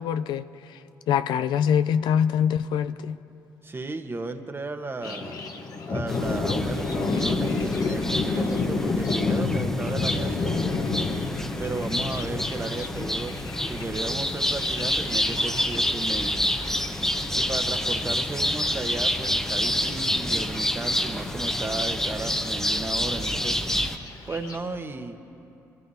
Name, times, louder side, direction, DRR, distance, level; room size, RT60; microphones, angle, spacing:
voice 1, 0.0-3.2, left 8 dB, 70° left, 0.4 m, -24 dB
voice 2, 3.6-5.3 5.9-10.8 11.6-16.5 17.4-23.5 24.3-25.2, right 3 dB, 30° right, 1.2 m, -34 dB
Thunder, 5.0-24.6, left 4 dB, 55° left, 1.2 m, -31 dB
sound 1, 6.1-24.0, equal, 5° left, 0.9 m, -28 dB
23.5 x 13.5 x 2.8 m
hypercardioid pair, 50°, 8 cm